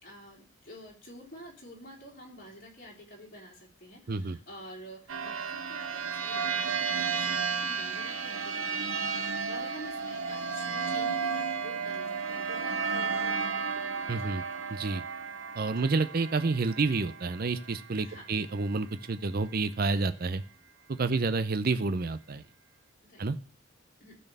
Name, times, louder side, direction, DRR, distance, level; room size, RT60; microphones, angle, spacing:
voice 1, 0.0-14.7 18.0-18.3 21.1-21.2 23.1-23.3 24.0-24.2, equal, 40° left, -1 dB, 3.6 m, -49 dB
sound 1, 5.1-18.3, right 5 dB, 70° right, 1.0 m, -33 dB
voice 2, 14.1-14.4 14.7-15.0 15.5-20.4 20.9-22.4 23.2-23.4, right 3 dB, 45° right, 13 dB, 0.5 m, -29 dB
12.5 x 4.3 x 6.6 m, 0.40 s
head